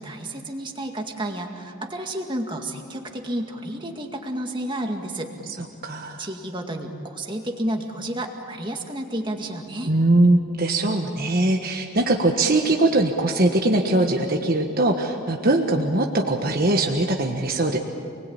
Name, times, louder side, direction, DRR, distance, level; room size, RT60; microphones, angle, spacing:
voice 1, 0.0-5.3 6.2-9.9, right 1 dB, 20° right, 2 dB, 2.1 m, -31 dB
voice 2, 5.8-6.2 9.8-17.8, right 2 dB, 40° right, 2 dB, 1.4 m, -21 dB
29.0 x 20.5 x 8.8 m, 2.6 s
head